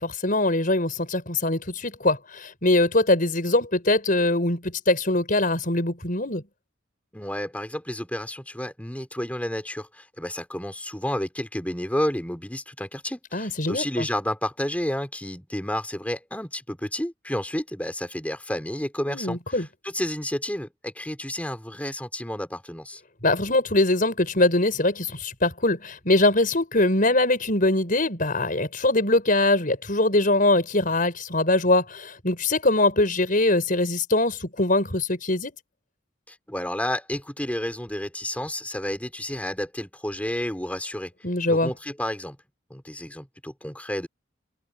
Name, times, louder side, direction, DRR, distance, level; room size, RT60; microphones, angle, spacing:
voice 1, 0.0-6.4 13.3-14.1 19.1-19.7 23.2-35.6 41.2-41.7, left 2 dB, 45° left, 5.7 m, -22 dB
voice 2, 7.1-23.0 36.3-41.1 41.5-42.4 42.7-44.1, left 1 dB, 10° left, 3.7 m, -31 dB
open air
head